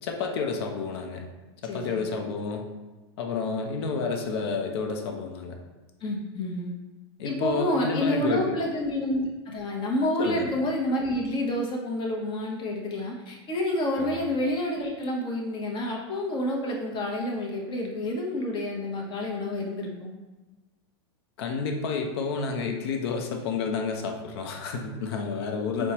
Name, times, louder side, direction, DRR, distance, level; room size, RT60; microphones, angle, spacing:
voice 1, 0.0-1.2 1.6-2.6 3.2-5.6 7.2-8.6 10.2-10.5 14.0-14.2 21.4-25.9, left 5 dB, 65° left, 3 dB, 0.6 m, -30 dB
voice 2, 1.7-2.0 6.0-6.7 7.2-20.1 25.8-25.9, left 1 dB, 35° left, -1 dB, 0.8 m, -29 dB
4.3 x 2.1 x 2.9 m, 1.2 s
hypercardioid pair, 115°, 14 cm